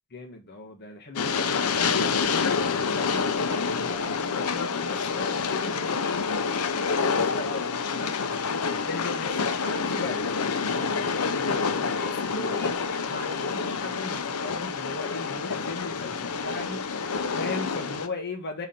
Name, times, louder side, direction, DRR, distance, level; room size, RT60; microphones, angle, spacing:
voice 1, 0.1-6.3 6.9-18.7, left 2 dB, 50° left, 1.4 m, -38 dB
Train, 1.2-18.1, left 5 dB, 85° left, 0.7 m, -28 dB
4.8 x 4.0 x 5.7 m
head